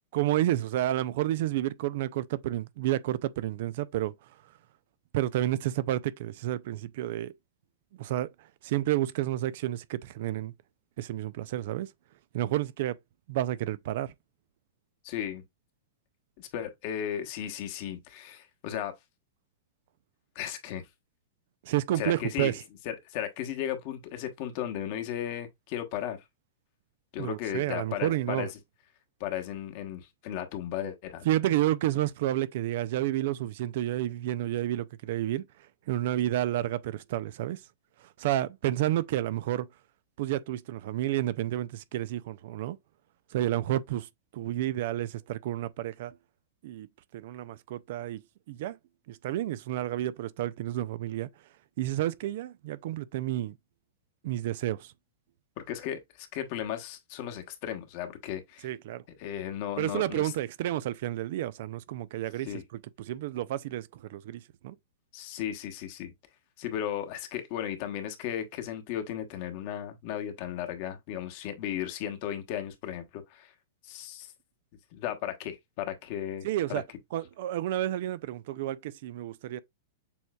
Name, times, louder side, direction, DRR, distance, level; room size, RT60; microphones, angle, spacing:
voice 1, 0.1-4.1 5.1-7.3 8.0-8.3 8.6-10.5 11.0-11.9 12.3-13.0 13.3-14.1 21.7-22.6 27.2-28.5 31.2-35.4 35.9-37.6 38.2-39.7 40.2-42.8 43.3-44.1 44.3-46.1 46.6-46.9 47.1-48.2 48.5-48.8 49.1-51.3 51.8-53.5 54.2-54.9 58.6-59.0 59.8-62.5 63.0-64.7 76.4-76.8 77.1-79.6, right 14 dB, 60° right, 0.4 m, -30 dB
voice 2, 15.0-15.4 16.4-18.9 20.3-20.8 22.0-22.5 22.8-26.2 27.1-28.6 29.2-31.3 55.6-58.7 59.2-60.3 62.4-62.6 65.1-66.1 66.6-73.5 73.8-74.3 74.9-76.8, left 10 dB, 50° left, 1.1 m, -35 dB
6.9 x 3.1 x 2.3 m
hypercardioid pair, 110°, 0 cm